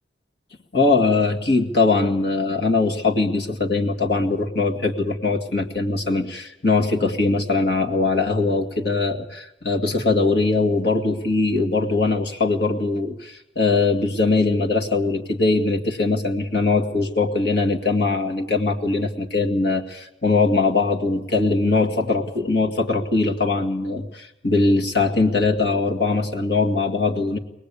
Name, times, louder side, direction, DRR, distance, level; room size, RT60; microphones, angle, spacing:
voice 1, 0.7-27.4, left 3 dB, 65° left, 2 dB, 2.1 m, -21 dB
24.0 x 19.0 x 8.5 m, 0.88 s
head